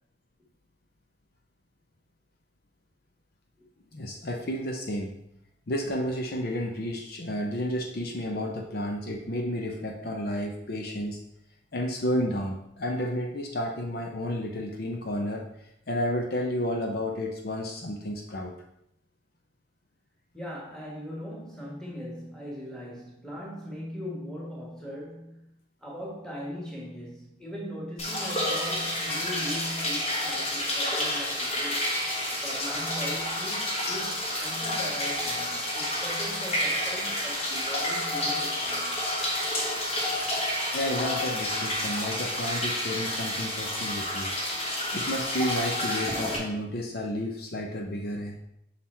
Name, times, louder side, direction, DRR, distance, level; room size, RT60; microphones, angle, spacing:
voice 1, 3.9-5.1 5.7-11.2 11.7-15.5 15.9-18.5 40.7-44.3 44.9-48.4, left 1 dB, 55° left, 1 dB, 0.6 m, -31 dB
voice 2, 20.3-25.5 25.8-31.9 32.4-39.0, equal, 5° left, -4 dB, 1.4 m, -39 dB
sound 1, 28.0-46.4, left 1 dB, 35° left, 1.2 m, -30 dB
5.7 x 3.9 x 4.3 m, 0.78 s
head